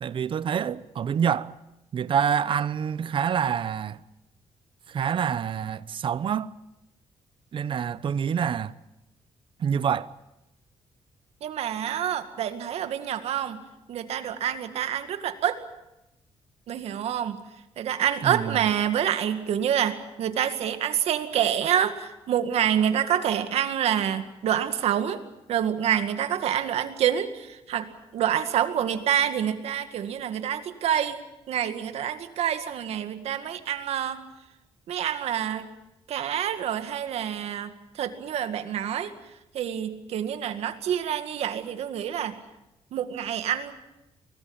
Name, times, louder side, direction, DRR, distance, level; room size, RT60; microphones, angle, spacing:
voice 1, 0.0-1.5 1.9-4.0 4.9-6.5 7.5-8.7 9.6-10.1 18.2-18.6, right 8 dB, 55° right, 0.8 m, -26 dB
voice 2, 11.4-13.6 13.9-15.6 16.7-17.4 17.8-25.2 25.5-31.2 31.5-34.2 34.9-35.7 36.1-39.1 39.5-42.4 42.9-43.7, right 9 dB, 80° right, 2.1 m, -27 dB
23.5 x 18.5 x 8.8 m
cardioid pair, 105°, 11 cm